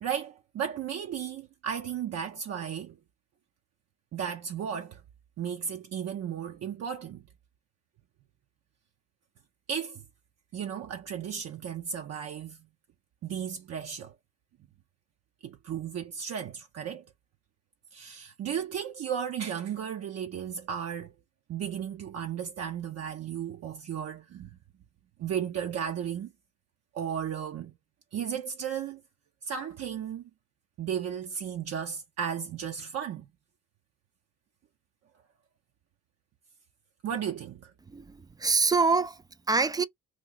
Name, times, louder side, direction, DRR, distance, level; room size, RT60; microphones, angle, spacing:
voice 1, 0.0-3.0 4.1-5.0 5.4-7.2 9.7-10.0 10.5-12.6 13.2-14.1 15.4-17.1 17.9-21.1 21.5-24.6 25.2-26.3 26.9-27.7 28.1-29.0 29.4-30.3 30.8-33.3 37.0-37.7, right 8 dB, 55° right, 0.6 m, -34 dB
voice 2, 37.9-39.8, right 4 dB, 15° right, 0.3 m, -26 dB
3.1 x 2.3 x 3.8 m
cardioid pair, 90°, 30 cm